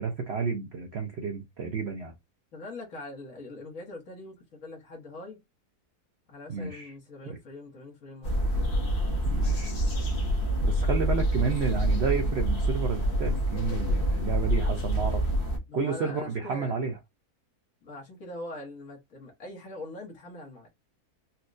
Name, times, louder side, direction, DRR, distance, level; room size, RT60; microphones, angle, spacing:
voice 1, 0.0-2.1 6.5-6.9 7.2-7.4 9.2-9.7 10.6-15.3 15.7-16.9, right 5 dB, 65° right, 0.6 m, -31 dB
voice 2, 2.5-5.4 6.3-8.7 15.7-16.7 17.8-20.7, left 2 dB, 60° left, 1.5 m, -42 dB
sound 1, 8.2-15.6, right 1 dB, 45° left, 1.0 m, -26 dB
4.1 x 2.2 x 2.4 m
omnidirectional pair, 1.6 m